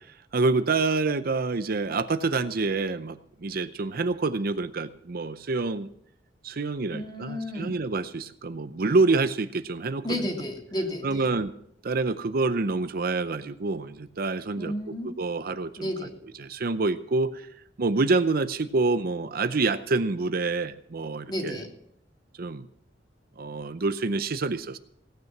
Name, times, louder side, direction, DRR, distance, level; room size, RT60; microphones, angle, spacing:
voice 1, 0.3-5.9 6.4-10.2 11.0-11.5 11.8-14.7 15.0-15.9 16.4-17.5 17.8-21.6 22.4-22.7 23.4-24.8, right 3 dB, 55° right, 11 dB, 0.6 m, -27 dB
voice 2, 6.9-7.7 10.0-11.2 14.6-15.1 15.8-16.1 21.3-21.7, left 1 dB, 25° left, 1 dB, 3.0 m, -32 dB
17.5 x 9.5 x 6.0 m, 0.70 s
head